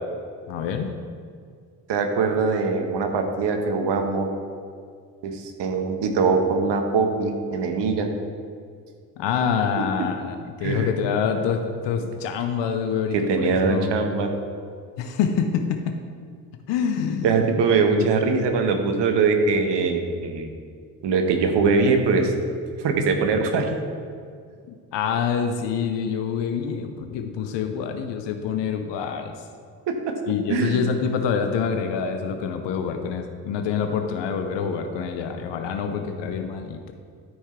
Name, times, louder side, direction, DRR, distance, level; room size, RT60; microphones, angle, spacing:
voice 1, 0.5-1.0 9.2-14.0 15.0-16.0 16.7-17.5 18.2-18.5 24.7-29.3 30.3-36.8, left 6 dB, 65° left, 6 dB, 0.8 m, -26 dB
voice 2, 1.9-4.3 5.2-8.1 10.6-10.9 13.1-14.3 17.2-20.5 21.0-22.3 22.8-23.7 29.9-30.1 30.5-30.8, right 4 dB, 65° right, 5 dB, 1.2 m, -22 dB
12.5 x 5.6 x 3.2 m, 2.2 s
hypercardioid pair, 45°, 45 cm